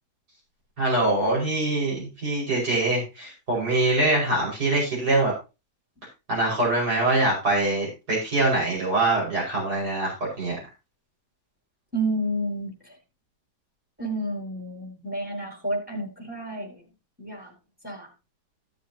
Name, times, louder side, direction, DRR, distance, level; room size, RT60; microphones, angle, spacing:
voice 1, 0.8-5.3 6.3-10.6, right 2 dB, 80° right, -3 dB, 6.2 m, -24 dB
voice 2, 11.9-12.9 14.0-16.8 17.2-17.5 17.8-18.1, right 1 dB, 5° right, 0 dB, 4.7 m, -30 dB
16.0 x 7.4 x 2.9 m, 0.28 s
omnidirectional pair, 1.7 m